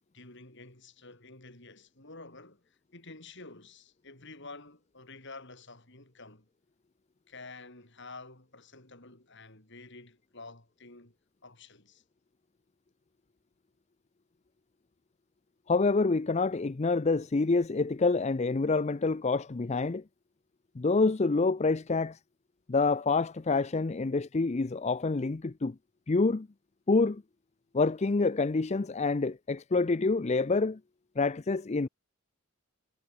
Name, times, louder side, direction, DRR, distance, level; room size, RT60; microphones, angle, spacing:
voice 1, 0.1-6.5 7.3-11.2 11.4-12.0, left 3 dB, 55° left, 6.6 m, -49 dB
voice 2, 15.7-20.0 20.8-22.2 22.7-25.8 26.1-26.5 26.9-27.2 27.7-30.8 31.2-31.9, left 3 dB, 30° left, 0.5 m, -27 dB
head